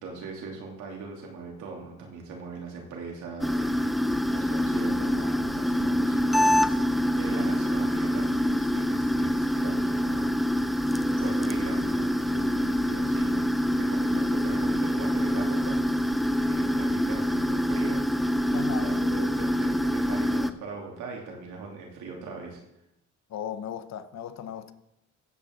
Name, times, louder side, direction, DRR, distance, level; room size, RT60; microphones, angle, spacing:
voice 1, 0.0-10.8 11.1-13.5 13.8-15.8 16.4-18.0 18.4-22.6, right 4 dB, 90° right, 2.9 m, -40 dB
sound 1, 3.4-20.5, equal, ahead, 0.5 m, -25 dB
voice 2, 18.5-18.9 23.3-24.7, left 9 dB, 65° left, 0.9 m, -36 dB
13.0 x 8.4 x 3.8 m
cardioid pair, 90°, 30 cm